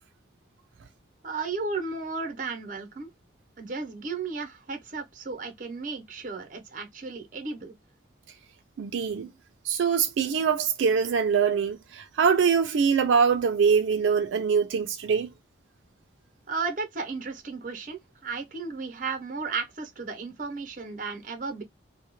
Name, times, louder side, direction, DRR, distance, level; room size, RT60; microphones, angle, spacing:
voice 1, 1.2-3.1 3.6-7.7 16.5-21.6, right 4 dB, 45° right, 0.7 m, -34 dB
voice 2, 8.8-9.3 9.6-15.3, right 6 dB, 85° right, 0.3 m, -23 dB
2.2 x 2.1 x 2.9 m
head